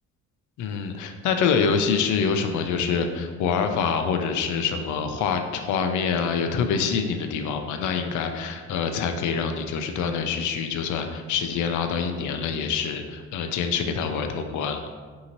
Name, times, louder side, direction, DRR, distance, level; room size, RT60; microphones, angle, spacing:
voice 1, 0.6-14.8, left 6 dB, 75° left, 6 dB, 0.5 m, -26 dB
5.4 x 2.8 x 2.9 m, 1.5 s
cardioid pair, 90°, 30 cm